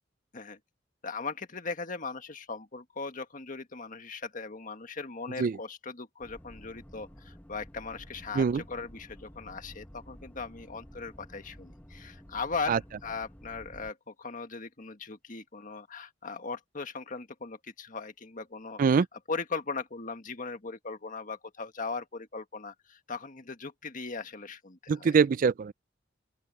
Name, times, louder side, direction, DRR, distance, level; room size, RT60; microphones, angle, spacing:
voice 1, 1.0-18.8 19.3-25.2, left 4 dB, 45° left, 1.7 m, -39 dB
sound 1, 6.2-13.9, equal, 10° left, 1.3 m, -51 dB
voice 2, 24.9-25.7, right 5 dB, 45° right, 0.3 m, -23 dB
open air
head